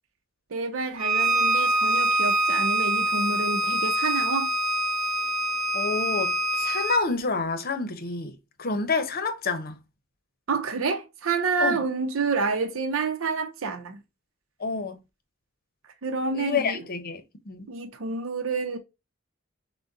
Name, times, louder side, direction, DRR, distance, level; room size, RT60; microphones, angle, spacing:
voice 1, 0.5-4.5 10.5-14.0 16.0-16.8 17.7-18.8, right 4 dB, 85° right, 0.6 m, -28 dB
Bowed string instrument, 1.0-7.0, right 1 dB, 35° right, 0.7 m, -25 dB
voice 2, 5.7-9.8 11.6-11.8 14.6-15.0 16.3-17.7, left 4 dB, 50° left, 0.8 m, -29 dB
6.2 x 2.2 x 2.5 m
head